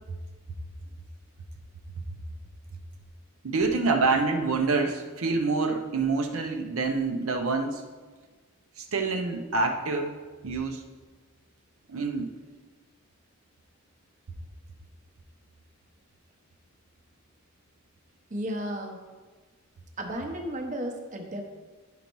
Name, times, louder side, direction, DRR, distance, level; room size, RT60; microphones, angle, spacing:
voice 1, 3.4-7.8 8.8-10.1 10.4-10.8 11.9-12.3, right 3 dB, 75° right, 2 dB, 0.7 m, -26 dB
voice 2, 18.3-19.0 20.0-21.4, equal, 35° right, 3 dB, 0.8 m, -33 dB
10.5 x 5.3 x 3.0 m, 1.4 s
head